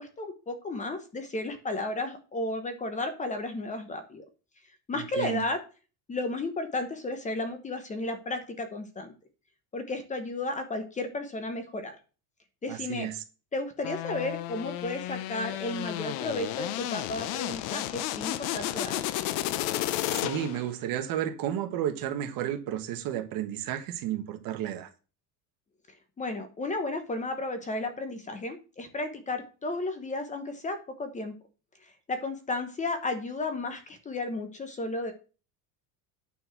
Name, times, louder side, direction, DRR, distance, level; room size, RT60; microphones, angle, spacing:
voice 1, 0.0-4.2 4.9-5.6 6.1-9.1 9.7-12.0 12.6-13.1 13.5-19.0 26.2-31.3 32.1-35.1, left 2 dB, 15° left, 1.0 m, -33 dB
voice 2, 12.7-13.2 20.1-24.9, right 11 dB, 55° right, 1.5 m, -32 dB
R-lfo riser, 13.8-20.7, left 14 dB, 75° left, 0.8 m, -32 dB
9.3 x 4.4 x 5.9 m
cardioid pair, 165°, 42 cm